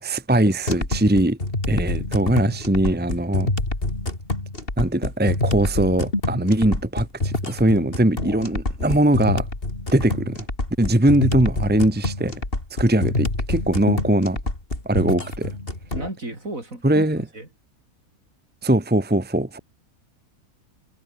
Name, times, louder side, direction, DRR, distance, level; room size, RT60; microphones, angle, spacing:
voice 1, 0.0-1.4 1.7-3.5 4.8-9.5 9.9-10.4 10.8-12.3 12.8-14.4 14.8-15.6 16.8-17.2 18.6-19.6, right 1 dB, 5° right, 1.5 m, -21 dB
sound 1, 0.7-16.1, left 2 dB, 40° left, 4.5 m, -27 dB
voice 2, 15.9-17.5, right 2 dB, 65° right, 6.8 m, -34 dB
omnidirectional pair, 1.5 m